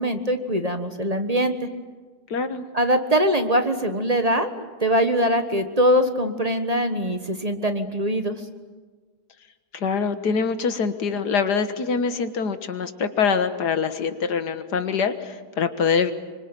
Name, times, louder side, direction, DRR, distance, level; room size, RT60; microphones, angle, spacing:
voice 1, 0.0-1.5 2.7-8.4, equal, 25° right, 7 dB, 1.4 m, -22 dB
voice 2, 2.3-2.7 9.7-16.1, left 5 dB, 90° left, 9 dB, 2.0 m, -24 dB
25.5 x 25.0 x 9.1 m, 1.4 s
omnidirectional pair, 1.7 m